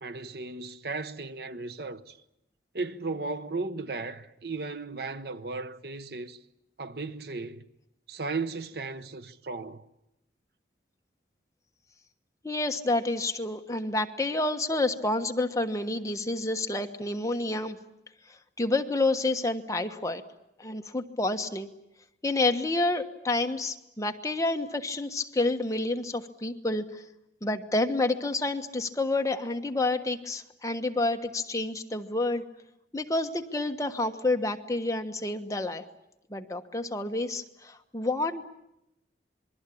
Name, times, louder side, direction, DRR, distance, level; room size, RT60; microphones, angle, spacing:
voice 1, 0.0-2.2 2.7-6.4 6.8-7.6 8.1-9.8, right 3 dB, 55° right, 1.0 m, -35 dB
voice 2, 12.4-17.8 18.3-20.2 20.6-21.7 22.2-27.0 27.4-32.4 32.9-35.9 36.3-38.4, left 2 dB, 15° left, 1.2 m, -29 dB
27.0 x 22.0 x 8.5 m
head